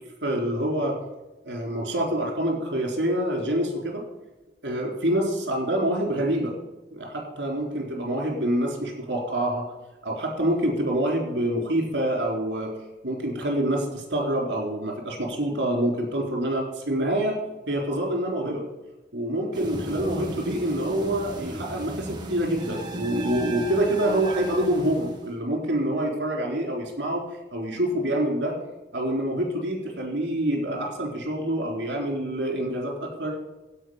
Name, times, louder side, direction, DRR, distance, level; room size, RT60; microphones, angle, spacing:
voice 1, 0.2-1.0 1.4-4.0 4.6-6.5 6.9-9.6 10.0-12.7 13.0-17.4 17.7-18.6 19.1-27.2 27.5-28.5 28.9-33.4, right 1 dB, 80° right, 1 dB, 3.8 m, -26 dB
sound 1, 19.5-25.3, right 1 dB, 25° right, 1.9 m, -35 dB
16.5 x 5.7 x 5.7 m, 1.0 s
head